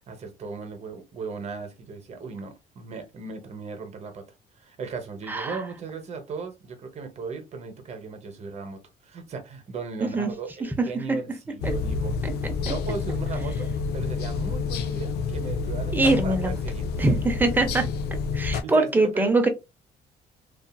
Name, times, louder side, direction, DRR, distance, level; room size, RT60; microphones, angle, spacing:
voice 1, 0.1-4.2 4.5-12.2 12.6-17.1 17.6-17.7 18.5-19.4, right 4 dB, 40° right, 0.9 m, -37 dB
voice 2, 5.3-5.6 10.0-10.3 11.6-11.7 12.2-12.7 15.9-16.5 17.0-17.8 18.3-19.5, right 2 dB, 10° right, 0.6 m, -23 dB
sound 1, 11.6-18.6, left 5 dB, 70° left, 0.4 m, -28 dB
2.7 x 2.4 x 2.3 m
cardioid pair, 110°, 17 cm